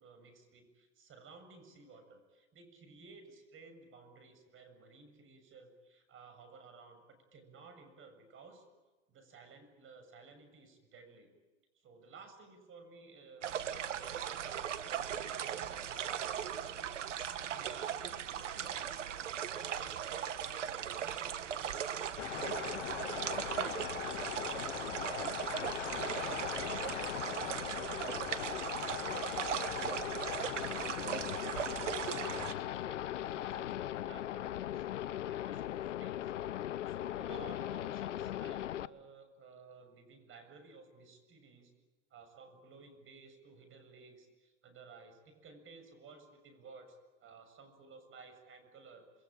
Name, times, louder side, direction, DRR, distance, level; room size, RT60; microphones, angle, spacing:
voice 1, 0.0-8.7 9.1-11.3 11.7-17.0 17.3-23.2 23.7-25.1 25.7-36.3 36.8-41.7 42.1-49.2, right 4 dB, 35° right, 9 dB, 7.2 m, -56 dB
sound 1, 13.4-32.5, right 9 dB, 85° right, 1.5 m, -38 dB
sound 2, 22.2-38.9, left 12 dB, 85° left, 0.8 m, -39 dB
27.5 x 22.5 x 8.9 m, 1.2 s
hypercardioid pair, 105°, 36 cm